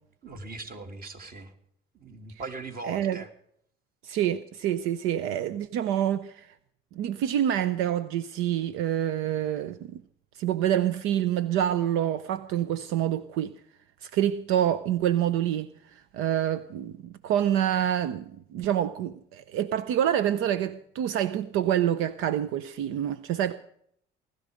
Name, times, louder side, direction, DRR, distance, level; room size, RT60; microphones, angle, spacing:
voice 1, 0.2-1.5 1.9-3.3, right 3 dB, 45° right, 3.2 m, -40 dB
voice 2, 2.9-3.2 4.0-6.5 6.9-10.0 10.3-13.5 14.0-23.5, right 10 dB, 80° right, 0.8 m, -27 dB
19.5 x 13.5 x 5.2 m
supercardioid pair, 90°, 21 cm